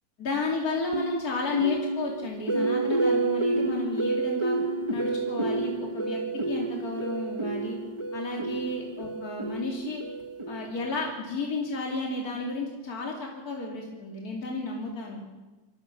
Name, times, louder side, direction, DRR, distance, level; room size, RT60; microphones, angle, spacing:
voice 1, 0.2-4.6 4.9-6.2 6.5-7.8 8.1-10.0 10.5-15.2, left 3 dB, 55° left, -2 dB, 3.2 m, -32 dB
sound 1, 0.9-11.0, right 3 dB, 20° right, 1.1 m, -30 dB
26.5 x 15.0 x 7.0 m, 1.2 s
omnidirectional pair, 1.9 m